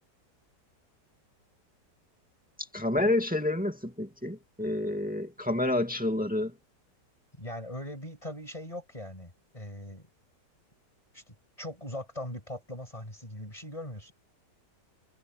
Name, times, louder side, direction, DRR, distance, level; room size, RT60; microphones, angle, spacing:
voice 1, 2.7-6.5, left 1 dB, 5° right, 2.4 m, -29 dB
voice 2, 7.4-10.1 11.1-14.1, left 1 dB, 20° left, 6.2 m, -40 dB
omnidirectional pair, 1.9 m